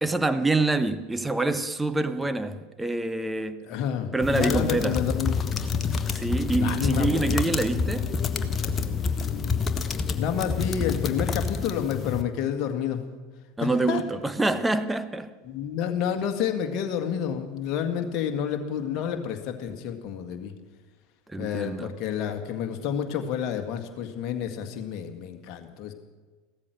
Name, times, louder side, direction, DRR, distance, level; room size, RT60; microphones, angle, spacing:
voice 1, 0.0-3.6 4.1-5.0 6.1-8.2 13.6-15.3 21.3-21.9, right 2 dB, 10° right, 11 dB, 1.0 m, -26 dB
voice 2, 3.6-5.5 6.6-7.4 10.2-13.0 13.6-14.0 15.4-20.5 21.4-25.9, left 8 dB, 45° left, 5 dB, 1.9 m, -29 dB
sound 1, 4.2-12.2, left 5 dB, 25° left, 1.1 m, -28 dB
16.0 x 13.5 x 6.5 m, 1.4 s
figure-of-eight pair, 75°, 0 cm